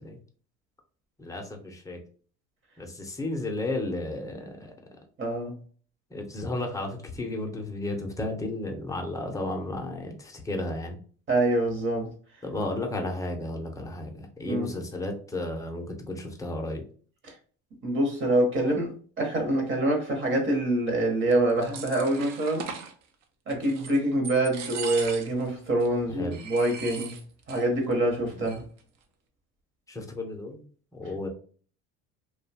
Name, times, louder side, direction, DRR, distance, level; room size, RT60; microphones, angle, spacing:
voice 1, 1.2-2.0 2.8-5.0 6.1-11.0 12.4-16.8 26.1-26.4 28.3-28.5 29.9-30.6 31.0-31.3, left 2 dB, 10° left, 0.6 m, -33 dB
voice 2, 5.2-5.6 11.3-12.1 14.4-14.7 17.2-17.3 17.8-22.7 23.5-27.2 27.5-28.6, right 1 dB, 40° right, 1.0 m, -25 dB
sound 1, 21.3-22.9 23.5-24.0 24.2-25.5 25.8-25.9 26.3-27.7 27.9-28.0 28.3-28.8, right 6 dB, 60° right, 0.6 m, -39 dB
2.7 x 2.2 x 2.7 m
supercardioid pair, 115°, 31 cm